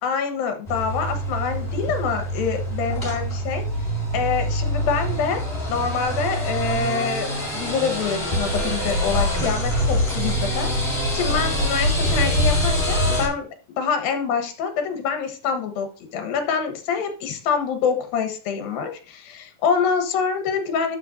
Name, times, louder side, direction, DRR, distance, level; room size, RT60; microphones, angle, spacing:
voice 1, 0.0-3.6 4.1-5.4 5.7-21.0, left 6 dB, 80° left, 6 dB, 3.1 m, -26 dB
sound 1, 0.7-13.3, equal, 15° left, 4.0 m, -24 dB
11.5 x 6.3 x 2.6 m, 0.38 s
omnidirectional pair, 4.2 m